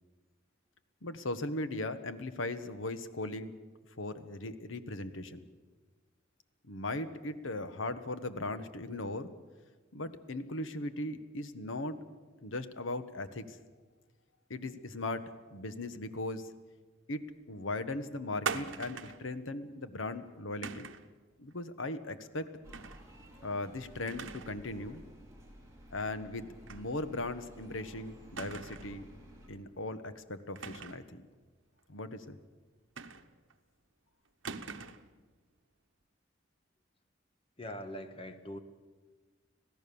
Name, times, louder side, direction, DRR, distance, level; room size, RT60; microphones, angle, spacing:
voice 1, 1.0-3.5 4.0-5.4 6.6-9.3 9.9-12.0 12.4-13.6 14.5-16.5 17.1-20.9 21.4-22.5 23.4-25.0 25.9-29.1 29.5-31.3 31.9-32.4, left 2 dB, 90° left, 11 dB, 1.3 m, -38 dB
sound 1, 18.5-19.3 20.6-21.1 22.7-23.0 23.4-23.5 24.1-24.6 24.9-25.0 26.7-26.9 27.2-27.3 28.4-29.0 30.6-31.1 33.0-33.5 34.4-35.1, right 5 dB, 85° right, 1.1 m, -41 dB
sound 2, 22.6-29.5, equal, 15° right, 4.5 m, -54 dB
voice 2, 37.6-38.6, equal, 30° left, 8 dB, 1.5 m, -42 dB
26.0 x 16.5 x 7.0 m, 1.4 s
head